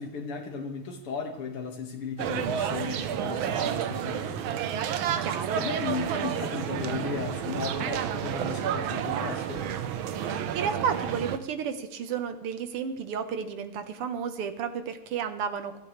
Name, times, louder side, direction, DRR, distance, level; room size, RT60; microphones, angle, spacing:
voice 1, 0.0-4.6 5.5-9.7, left 5 dB, 80° left, 4 dB, 2.7 m, -35 dB
sound 1, 2.2-11.4, right 8 dB, 70° right, 1.6 m, -30 dB
voice 2, 5.2-5.6 10.3-15.8, right 7 dB, 85° right, 9 dB, 2.1 m, -32 dB
27.5 x 9.1 x 3.2 m, 0.98 s
omnidirectional pair, 2.4 m